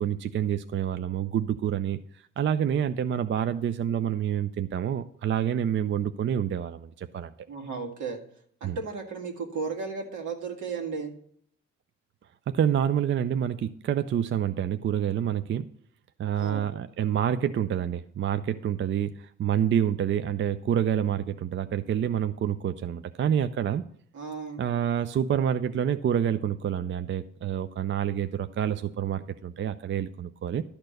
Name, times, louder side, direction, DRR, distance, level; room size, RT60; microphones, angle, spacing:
voice 1, 0.0-2.0 2.4-7.3 8.6-8.8 12.5-15.7 16.2-23.8 24.6-30.6, right 9 dB, 40° right, 11 dB, 0.4 m, -27 dB
voice 2, 7.5-8.2 8.6-11.1 16.3-16.8 24.1-24.9, right 5 dB, 75° right, 2 dB, 2.0 m, -35 dB
12.0 x 4.4 x 6.5 m, 0.65 s
cardioid pair, 90°, 30 cm